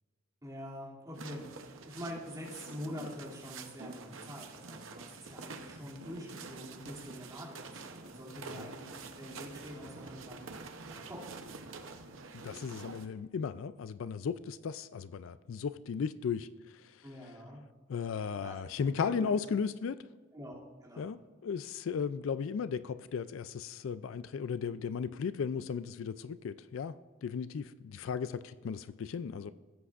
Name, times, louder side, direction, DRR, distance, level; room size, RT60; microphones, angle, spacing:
voice 1, 0.4-10.5 10.9-11.2 17.0-17.6 18.4-18.6 19.0-19.3 20.3-21.1, equal, 15° right, -5 dB, 2.6 m, -45 dB
sound 1, 1.1-13.1, right 4 dB, 75° right, 0.8 m, -47 dB
voice 2, 12.3-17.0 17.9-20.0 21.0-26.9 27.2-29.5, left 6 dB, 70° left, 14 dB, 0.4 m, -36 dB
16.5 x 8.4 x 2.5 m, 1.4 s
head